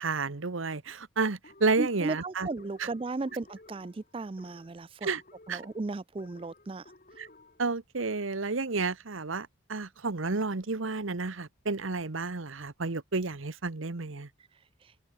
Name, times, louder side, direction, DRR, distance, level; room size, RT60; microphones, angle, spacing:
voice 1, 0.0-2.5 2.8-2.9 5.0-5.2 5.5-5.6 7.2-7.3 7.6-14.3, right 3 dB, 80° right, 1.2 m, -31 dB
sound 1, 1.4-8.5, left 2 dB, 40° left, 2.3 m, -57 dB
voice 2, 1.8-5.1 5.5-6.8, right 3 dB, 25° right, 0.4 m, -35 dB
head